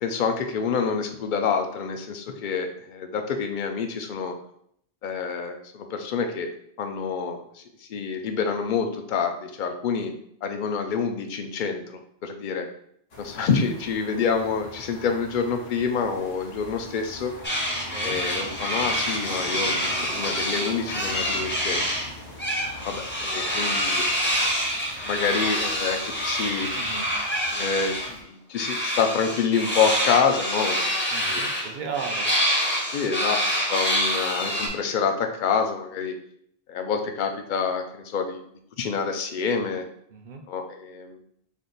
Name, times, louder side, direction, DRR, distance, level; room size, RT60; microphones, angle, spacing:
voice 1, 0.0-4.3 5.0-6.5 6.8-7.6 7.9-10.1 10.4-12.7 13.2-17.3 18.0-21.9 22.8-24.0 25.0-26.7 27.5-30.9 31.2-31.4 32.9-36.1 36.7-38.4 38.8-39.8 40.5-41.2, left 6 dB, 60° left, 5 dB, 0.6 m, -27 dB
sound 1, 13.1-28.2, equal, 75° left, 1.2 m, -42 dB
sound 2, 17.4-22.1 22.4-28.1 28.6-34.7, equal, 15° left, 0.6 m, -26 dB
voice 2, 17.7-18.2 26.7-27.1 31.1-32.3 40.1-40.4, right 6 dB, 55° right, 4 dB, 0.6 m, -36 dB
3.5 x 2.5 x 3.8 m, 0.68 s
omnidirectional pair, 1.0 m